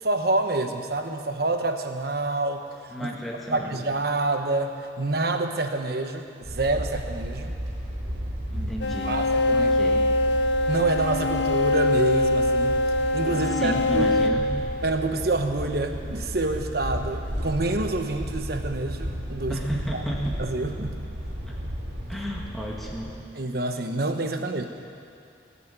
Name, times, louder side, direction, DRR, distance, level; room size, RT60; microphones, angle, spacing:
voice 1, 0.0-2.6 3.0-3.1 3.5-7.6 9.0-9.7 10.7-12.8 13.1-14.1 14.8-19.6 20.4-21.1 23.3-24.7, right 2 dB, 60° right, 5 dB, 1.1 m, -27 dB
voice 2, 2.9-3.7 8.5-9.2 9.5-10.1 13.3-14.5 19.5-20.4 21.5-21.6 22.1-23.2, equal, ahead, -3 dB, 1.5 m, -33 dB
sound 1, 6.4-23.1, equal, 75° right, 3.5 m, -34 dB
sound 2, 8.8-15.3, left 2 dB, 75° left, 0.5 m, -23 dB
19.5 x 7.2 x 9.2 m, 2.6 s
head